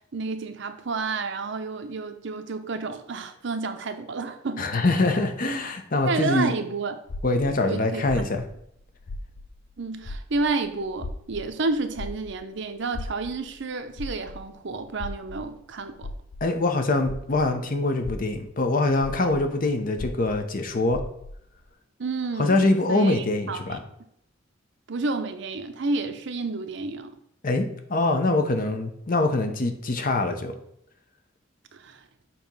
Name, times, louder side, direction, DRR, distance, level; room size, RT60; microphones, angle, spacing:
voice 1, 0.1-4.6 6.1-7.0 7.7-8.0 9.8-16.1 22.0-23.8 24.9-27.2 31.7-32.0, right 3 dB, 65° right, 8 dB, 0.7 m, -30 dB
voice 2, 4.6-6.5 7.2-8.4 16.4-21.0 22.4-23.8 27.4-30.5, left 2 dB, 45° left, 6 dB, 0.8 m, -24 dB
sound 1, 7.1-9.7 10.0-17.6 18.0-21.5, left 2 dB, 80° left, 0.6 m, -38 dB
7.0 x 3.0 x 5.4 m, 0.73 s
head